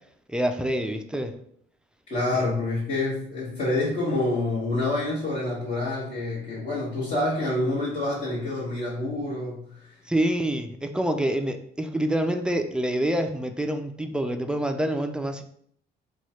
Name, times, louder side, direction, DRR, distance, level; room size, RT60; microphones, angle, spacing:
voice 1, 0.3-1.3 2.3-2.4 10.1-15.4, right 1 dB, 5° right, 6 dB, 0.4 m, -26 dB
voice 2, 2.1-9.9, left 2 dB, 40° left, -9 dB, 1.4 m, -27 dB
3.0 x 2.3 x 4.2 m, 0.65 s
cardioid pair, 100°, 19 cm